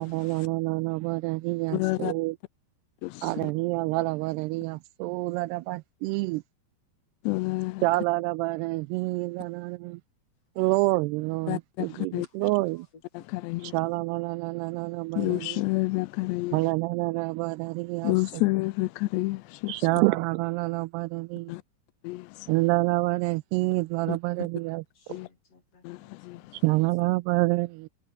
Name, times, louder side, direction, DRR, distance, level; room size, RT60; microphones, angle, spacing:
voice 1, 0.0-2.4 3.2-6.4 7.8-10.0 10.6-12.9 13.7-15.6 16.5-18.4 19.7-21.5 22.5-25.2 26.5-27.9, right 21 dB, 85° right, 2.4 m, -27 dB
voice 2, 1.7-2.1 3.0-3.5 7.3-7.8 11.5-11.9 12.1-12.3 13.4-13.6 15.2-16.6 18.0-19.7 21.5-21.6 22.0-22.5 24.1-24.2 25.1-25.3 25.8-26.4, left 21 dB, 85° left, 2.8 m, -29 dB
voice 3, 12.2-13.3 24.9-27.1, left 4 dB, 35° left, 5.1 m, -60 dB
omnidirectional pair, 5.0 m